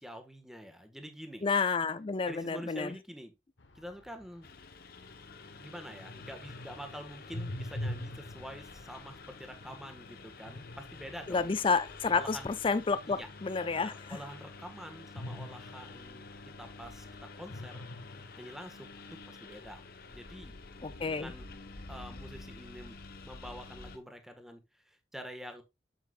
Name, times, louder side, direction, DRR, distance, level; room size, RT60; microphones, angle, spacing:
voice 1, 0.0-1.5 2.3-3.3 3.7-4.5 5.6-11.5 12.1-12.5 13.0-13.3 13.8-16.2 16.6-17.0 17.4-17.9 18.4-18.9 19.3-19.8 20.1-20.6 21.1-21.6 21.9-23.0 23.2-25.6, equal, ahead, 1.4 m, -46 dB
voice 2, 1.4-2.9 11.3-13.9 20.8-21.3, left 4 dB, 30° left, 0.4 m, -30 dB
sound 1, 3.6-13.8 15.2-17.1 17.4-19.1, left 1 dB, 85° left, 1.0 m, -45 dB
Engine, 4.4-24.0, left 3 dB, 55° left, 1.0 m, -49 dB
8.0 x 7.0 x 2.4 m
head